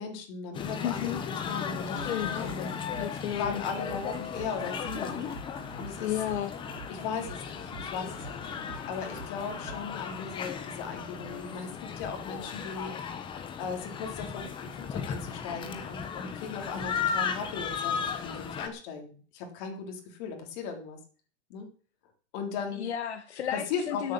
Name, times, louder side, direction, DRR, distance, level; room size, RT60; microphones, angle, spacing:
voice 1, 0.0-3.0 3.4-5.3 5.8-6.1 6.9-12.9 13.6-21.0 21.5-21.7 22.3-22.9 23.5-24.1, left 5 dB, 40° left, 4 dB, 3.5 m, -37 dB
sound 1, 0.5-18.7, left 7 dB, 15° left, 1.0 m, -36 dB
voice 2, 0.8-1.2 2.0-2.4 3.0-4.0 6.0-6.5 22.7-24.1, left 10 dB, 70° left, 7 dB, 1.6 m, -33 dB
sound 2, 1.8-9.8, right 5 dB, 40° right, 2.5 m, -48 dB
12.0 x 8.1 x 7.3 m, 0.43 s
hypercardioid pair, 155°, 34 cm